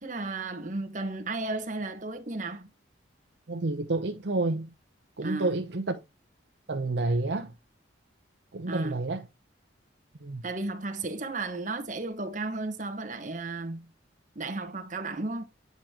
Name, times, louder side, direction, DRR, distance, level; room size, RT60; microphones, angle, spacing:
voice 1, 0.0-2.7 5.2-5.5 8.7-8.9 10.4-13.9 14.3-15.4, right 3 dB, 40° right, 1.2 m, -34 dB
voice 2, 3.5-4.7 5.2-6.0 6.7-7.5 8.5-9.3 10.2-10.4, right 2 dB, 65° right, 0.7 m, -29 dB
8.2 x 5.0 x 2.9 m
head